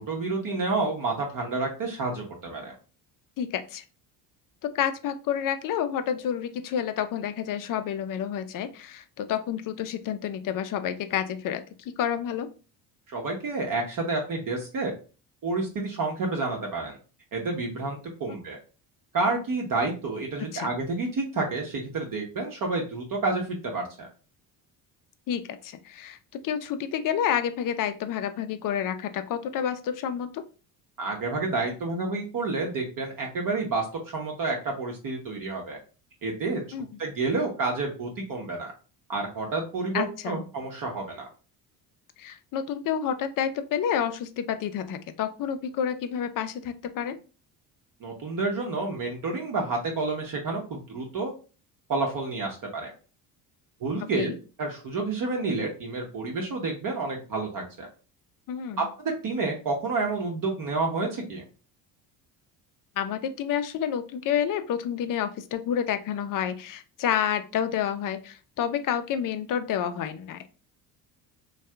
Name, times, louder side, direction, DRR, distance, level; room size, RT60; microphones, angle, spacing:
voice 1, 0.0-2.7 13.1-14.9 15.4-17.0 17.3-18.6 19.1-24.1 31.0-35.8 36.2-36.6 37.0-38.7 39.1-41.3 48.0-51.3 51.9-52.9 53.8-54.3 54.6-57.9 58.8-61.4, right 3 dB, 40° right, 0 dB, 0.9 m, -29 dB
voice 2, 3.4-3.8 4.7-11.6 12.0-12.5 20.5-20.7 25.3-26.2 26.4-30.4 36.7-36.9 39.9-40.4 42.2-47.2 54.2-54.3 58.5-58.9 63.0-70.5, left 9 dB, 45° left, 9 dB, 0.5 m, -29 dB
2.6 x 2.4 x 3.3 m, 0.35 s
hypercardioid pair, 65°, 48 cm